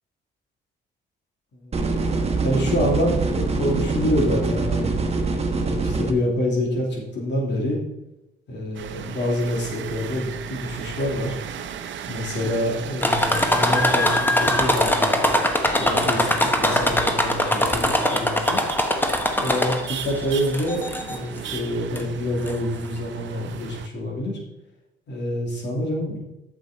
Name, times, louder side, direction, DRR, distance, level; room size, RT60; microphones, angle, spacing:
sound 1, 1.7-6.1, right 3 dB, 30° right, 1.2 m, -24 dB
voice 1, 2.4-4.9 5.5-7.8 8.5-11.3 12.1-15.1 15.8-18.6 19.3-24.4 25.1-26.2, left 1 dB, 60° left, -1 dB, 3.0 m, -26 dB
sound 2, 8.7-23.9, right 8 dB, 70° right, 0.8 m, -36 dB
sound 3, 13.0-20.0 20.5-21.2 22.0-22.1 22.5-22.6, left 1 dB, 10° left, 1.0 m, -21 dB
8.2 x 6.8 x 4.3 m, 0.93 s
cardioid pair, 90°, 20 cm